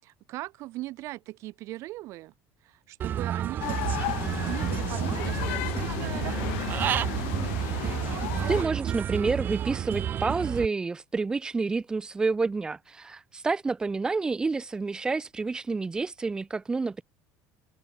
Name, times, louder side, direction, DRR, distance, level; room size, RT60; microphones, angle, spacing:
voice 1, 0.0-2.3 2.6-3.9 4.2-6.8, right 18 dB, 50° right, 5.9 m, -39 dB
Human voice / Bird, 3.0-10.6, right 10 dB, 30° right, 2.4 m, -30 dB
sound 1, 3.6-8.6, left 29 dB, 85° left, 0.9 m, -34 dB
voice 2, 8.5-17.0, right 4 dB, 10° right, 1.4 m, -29 dB
open air
cardioid pair, 160°, 6 cm